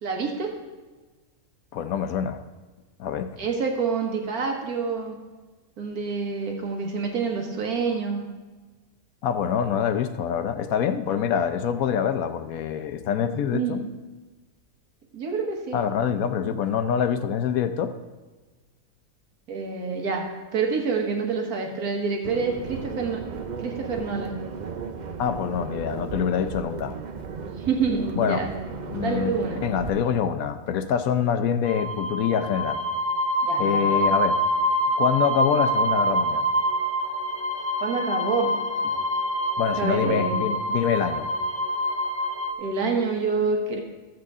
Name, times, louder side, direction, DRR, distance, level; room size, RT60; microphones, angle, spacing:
voice 1, 0.0-0.5 3.4-5.2 5.8-8.2 13.5-13.9 15.1-15.8 19.5-23.2 23.6-24.4 27.6-28.5 29.0-29.6 33.4-34.1 37.8-38.6 39.8-40.5 42.6-43.8, right 5 dB, 80° right, 2 dB, 1.8 m, -27 dB
voice 2, 1.7-2.4 3.0-3.4 9.2-13.8 15.7-17.9 25.2-26.9 28.1-28.4 28.9-29.3 29.6-32.8 33.6-34.4 35.0-36.4 39.6-41.3, left 8 dB, 75° left, 9 dB, 1.1 m, -25 dB
sound 1, 22.2-29.9, right 5 dB, 60° right, 0.4 m, -35 dB
sound 2, 31.6-42.5, equal, 30° left, 0.5 m, -26 dB
14.0 x 7.6 x 3.6 m, 1.3 s
omnidirectional pair, 1.5 m